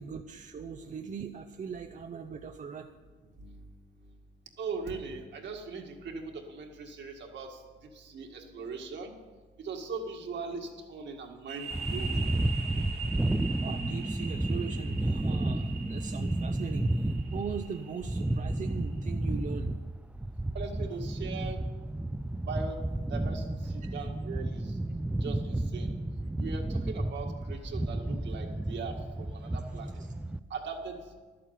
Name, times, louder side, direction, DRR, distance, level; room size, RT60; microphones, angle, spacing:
voice 1, 0.0-2.9 13.6-19.7 23.8-23.9, right 6 dB, 40° right, 5 dB, 0.7 m, -40 dB
voice 2, 4.6-7.6 7.9-9.1 9.6-12.2 20.5-21.6 22.5-22.8 23.1-24.7 25.2-25.9 26.4-30.0 30.5-31.0, right 4 dB, 65° right, 2 dB, 2.0 m, -40 dB
sound 1, 11.5-18.9, right 5 dB, 80° right, 2.1 m, -43 dB
sound 2, 11.7-30.4, right 1 dB, 5° right, 0.3 m, -32 dB
11.5 x 8.6 x 7.2 m, 1.4 s
cardioid pair, 90°, 20 cm